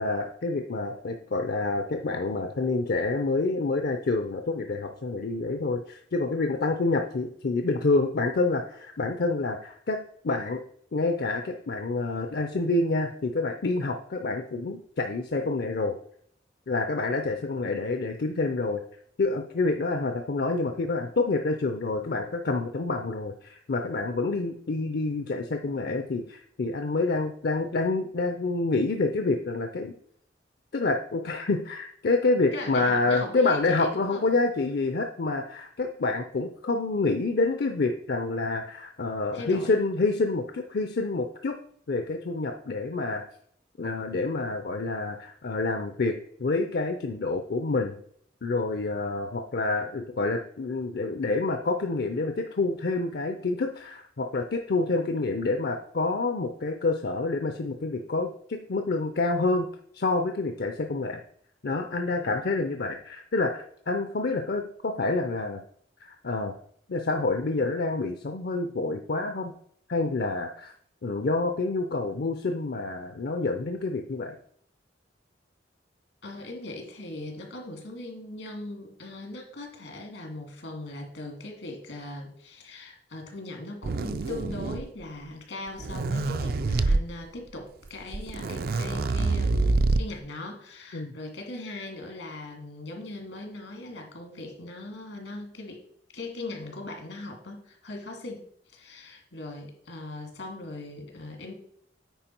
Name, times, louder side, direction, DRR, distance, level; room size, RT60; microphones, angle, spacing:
voice 1, 0.0-10.6 10.9-16.0 16.7-18.8 19.2-29.9 30.7-41.5 41.9-43.2 43.8-48.0 48.4-59.7 59.9-61.2 61.6-65.6 66.0-66.5 66.9-69.5 69.9-70.7 71.0-74.3 90.9-91.1, left 3 dB, 60° left, 6 dB, 0.6 m, -28 dB
voice 2, 32.5-34.3 39.3-39.8 76.2-95.8 96.1-101.5, left 2 dB, 85° left, 3 dB, 2.1 m, -39 dB
sound 1, 83.8-85.0 85.7-87.0 87.9-88.0 88.1-90.2, right 3 dB, 55° right, 0.4 m, -26 dB
9.1 x 4.5 x 4.4 m, 0.65 s
head